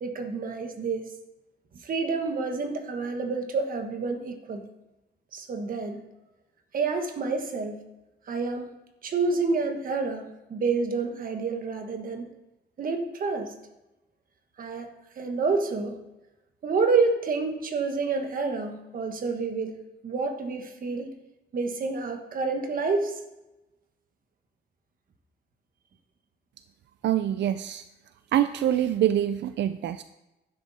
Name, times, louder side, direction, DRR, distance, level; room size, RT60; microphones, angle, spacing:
voice 1, 0.0-1.1 1.8-4.6 5.3-6.0 6.7-7.8 8.3-8.7 9.0-12.3 12.8-13.5 14.6-14.9 15.2-16.0 16.6-21.1 21.5-23.2, right 4 dB, 50° right, 5 dB, 1.3 m, -28 dB
voice 2, 27.0-27.8 28.3-30.0, right 11 dB, 85° right, 12 dB, 0.4 m, -25 dB
12.0 x 10.5 x 4.2 m, 1.0 s
wide cardioid pair, 180°, 18 cm